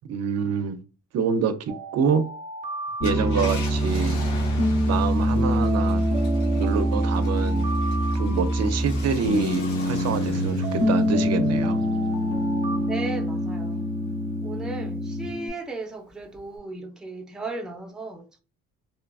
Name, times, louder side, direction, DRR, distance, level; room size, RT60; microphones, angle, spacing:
voice 1, 0.1-0.8 1.1-2.3 3.0-4.2 4.9-6.0 6.5-7.7 8.1-11.8, right 6 dB, 60° right, 0.5 m, -26 dB
Alarm, 1.7-4.3 5.6-9.3 10.6-13.9, right 3 dB, 25° right, 0.8 m, -37 dB
Car, 2.9-13.7 14.2-14.3 16.3-16.6, left 1 dB, 85° left, 0.9 m, -38 dB
Piano, 3.0-15.5, equal, 45° left, 1.0 m, -24 dB
voice 2, 12.9-13.8 14.4-18.4, right 3 dB, ahead, 0.4 m, -36 dB
2.9 x 2.2 x 2.3 m
cardioid pair, 90°, 30 cm